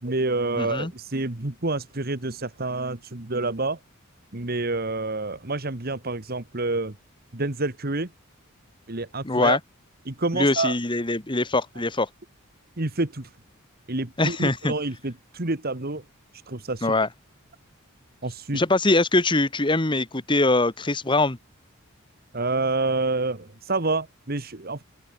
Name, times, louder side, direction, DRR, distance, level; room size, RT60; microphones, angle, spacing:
voice 1, 0.0-3.8 4.3-7.0 7.3-8.1 8.9-9.6 10.0-10.8 12.8-13.3 13.9-16.0 16.5-16.9 18.2-18.6 22.3-24.8, right 2 dB, 45° right, 1.7 m, -28 dB
voice 2, 0.6-0.9 9.2-9.6 10.3-12.1 14.2-14.7 16.8-17.1 18.5-21.4, left 2 dB, 20° left, 1.4 m, -22 dB
open air
head